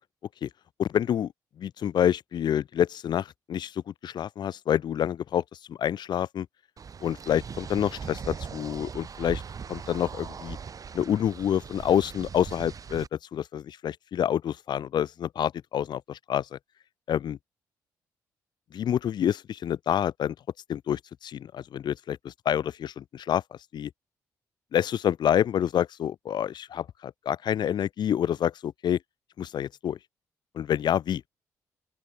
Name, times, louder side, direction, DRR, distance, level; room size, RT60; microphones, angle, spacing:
voice 1, 0.8-1.3 1.6-3.7 4.0-5.4 5.7-6.5 7.0-9.4 9.7-10.6 10.9-16.5 17.1-17.4 18.7-20.3 20.7-23.4 23.7-23.9 24.7-29.0 29.4-30.0 30.6-31.2, left 10 dB, 55° left, 0.5 m, -27 dB
sound 1, 6.8-13.1, right 6 dB, 40° right, 0.7 m, -40 dB
open air
hypercardioid pair, 40°, 9 cm